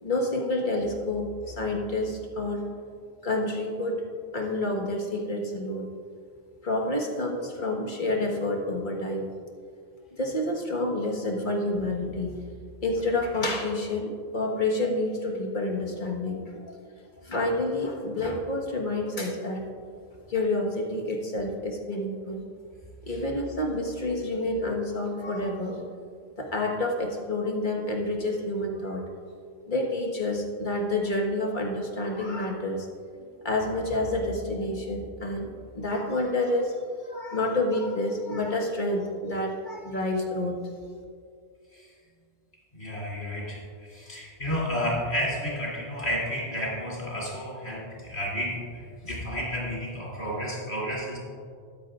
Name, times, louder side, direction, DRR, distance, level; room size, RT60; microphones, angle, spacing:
voice 1, 0.0-2.6 3.2-4.0 4.3-5.9 6.6-9.3 10.2-12.4 12.8-16.8 17.2-19.6 20.3-22.4 23.0-25.8 26.4-29.1 29.7-32.9 33.4-40.6, left 2 dB, 50° left, 0 dB, 1.6 m, -29 dB
voice 2, 42.7-51.2, equal, 90° left, -5 dB, 3.3 m, -31 dB
14.5 x 12.5 x 2.5 m, 2.2 s
omnidirectional pair, 1.1 m